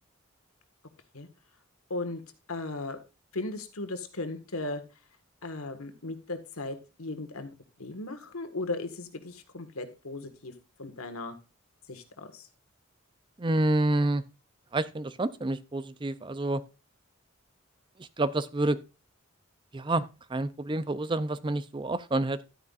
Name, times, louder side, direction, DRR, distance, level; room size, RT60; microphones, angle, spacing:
voice 1, 1.9-2.2 2.5-3.0 3.3-4.8 5.4-7.5 7.8-10.5 10.8-11.4 11.9-12.5, left 2 dB, 90° left, 1.6 m, -36 dB
voice 2, 13.4-14.2 14.7-16.6 18.0-18.8 19.7-22.4, right 2 dB, 25° right, 0.4 m, -28 dB
12.0 x 9.4 x 2.5 m
head